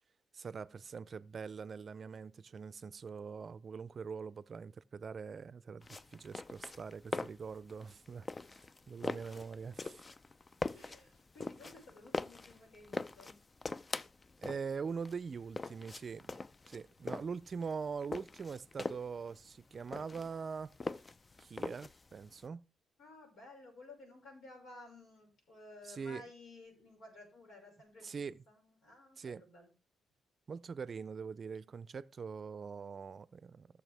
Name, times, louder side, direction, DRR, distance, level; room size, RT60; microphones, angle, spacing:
voice 1, 0.3-8.3 8.5-10.0 14.4-16.4 16.7-20.7 21.4-22.6 25.9-26.2 28.0-28.4 29.2-29.4 30.5-33.7, right 5 dB, 45° right, 0.4 m, -43 dB
sound 1, 5.8-22.4, left 3 dB, 30° left, 0.4 m, -43 dB
voice 2, 10.7-13.4 23.0-29.7, left 2 dB, 80° left, 5.6 m, -55 dB
15.0 x 6.7 x 3.5 m
cardioid pair, 95°, 0 cm